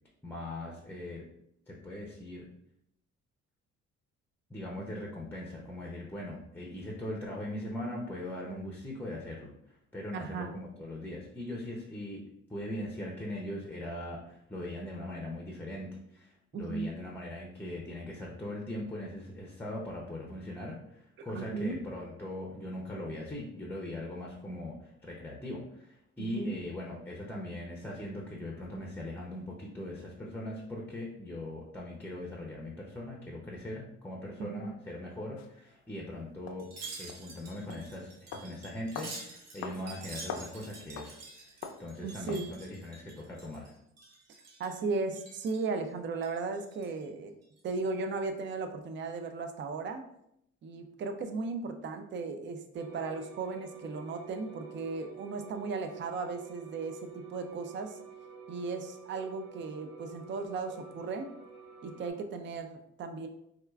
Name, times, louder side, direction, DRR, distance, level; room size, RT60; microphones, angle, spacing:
voice 1, 0.2-1.2 1.7-2.5 4.5-12.2 12.5-36.7 37.0-43.7, left 1 dB, 5° left, -2 dB, 0.6 m, -40 dB
voice 2, 10.1-10.5 16.5-16.9 21.2-21.8 26.2-26.6 34.4-34.7 42.0-42.5 44.6-47.3 47.6-50.0 50.6-58.0 58.5-61.3 61.8-63.3, right 4 dB, 40° right, 7 dB, 0.4 m, -36 dB
sound 1, 35.4-35.5 36.5-36.6 37.1-37.2 37.7-37.9 38.3-38.5 39.0-39.2 39.6-39.8 40.1-40.5 41.0-41.1 41.6-41.9 42.3-42.5, left 6 dB, 65° left, 0.5 m, -40 dB
Wind chime, 36.6-43.7 44.0-44.8 45.1-45.7 46.1-47.0 47.4-47.6, right 3 dB, 60° right, 1.0 m, -48 dB
sound 2, 52.7-62.1, right 6 dB, 80° right, 1.1 m, -49 dB
4.3 x 2.3 x 2.3 m, 0.75 s
cardioid pair, 90°, 30 cm